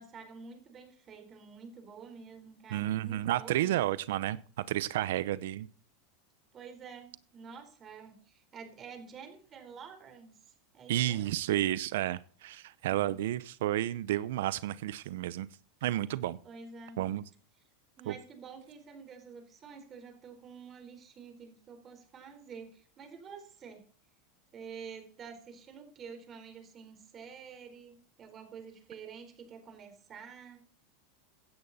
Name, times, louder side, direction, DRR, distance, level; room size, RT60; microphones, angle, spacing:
voice 1, 0.0-3.9 6.5-11.4 16.4-17.0 18.0-23.8 24.5-30.7, right 6 dB, 30° right, 4.3 m, -49 dB
voice 2, 2.7-5.7 10.9-15.5 15.8-16.4 17.0-17.2 18.1-18.2, right 13 dB, 75° right, 0.7 m, -31 dB
16.0 x 10.5 x 4.2 m
supercardioid pair, 130°, 0 cm